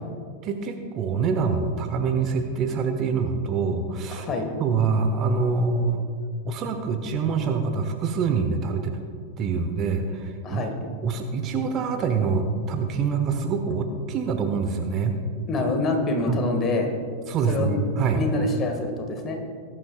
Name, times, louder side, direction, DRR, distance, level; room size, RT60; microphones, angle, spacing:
voice 1, 0.4-4.3 4.6-6.0 6.4-8.9 9.4-10.6 11.0-15.1 16.3-16.4 17.3-18.2, right 5 dB, 35° right, 5 dB, 1.0 m, -25 dB
voice 2, 4.1-4.5 10.4-10.7 15.5-16.9 17.5-17.8 18.1-19.4, left 2 dB, 25° left, 3 dB, 1.9 m, -26 dB
19.5 x 11.0 x 2.4 m, 2.1 s
figure-of-eight pair, 90°, 0 cm